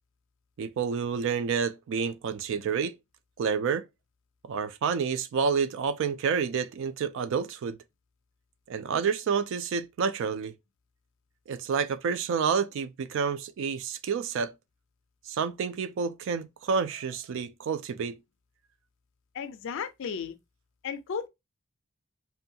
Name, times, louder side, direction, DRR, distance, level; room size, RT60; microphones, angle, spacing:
voice 1, 0.6-3.0 3.4-3.9 4.5-7.8 8.7-10.5 11.5-14.5 15.3-18.2, right 6 dB, 60° right, 0.3 m, -29 dB
voice 2, 19.3-20.4 20.8-21.3, left 6 dB, 60° left, 0.4 m, -34 dB
2.6 x 2.2 x 2.6 m
head